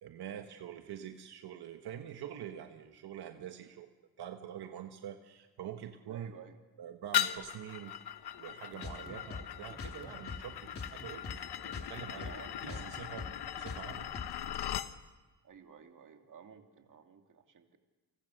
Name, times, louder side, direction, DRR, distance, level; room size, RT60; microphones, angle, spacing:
voice 1, 0.0-3.9 4.2-6.3 6.8-12.3 12.6-14.2, right 10 dB, 90° right, 6 dB, 1.4 m, -45 dB
voice 2, 6.1-6.6 8.9-9.2 12.1-12.9 15.4-17.8, right 7 dB, 55° right, 4 dB, 2.8 m, -53 dB
sound 1, 7.1-14.9, left 10 dB, 85° left, 1.1 m, -39 dB
sound 2, 8.7-11.4 11.6-14.6, left 4 dB, 35° left, 3.0 m, -44 dB
30.0 x 23.5 x 6.5 m, 1.2 s
cardioid pair, 110°, 38 cm